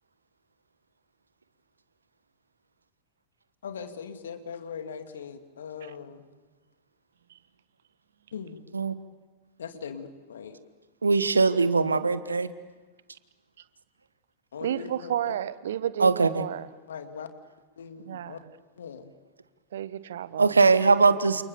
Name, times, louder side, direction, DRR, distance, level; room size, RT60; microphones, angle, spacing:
voice 1, 3.6-6.3 8.3-8.6 9.6-10.6 14.5-15.3 16.9-17.3 17.8-18.4 18.8-19.1, left 6 dB, 65° left, 7 dB, 2.3 m, -40 dB
voice 2, 11.0-12.5 16.0-16.5 20.4-21.4, right 4 dB, 75° right, 13 dB, 1.3 m, -21 dB
voice 3, 14.6-16.7 18.1-18.4 19.7-20.5, right 10 dB, 60° right, 16 dB, 1.1 m, -32 dB
29.0 x 28.5 x 7.1 m, 1.3 s
figure-of-eight pair, 90°, 0 cm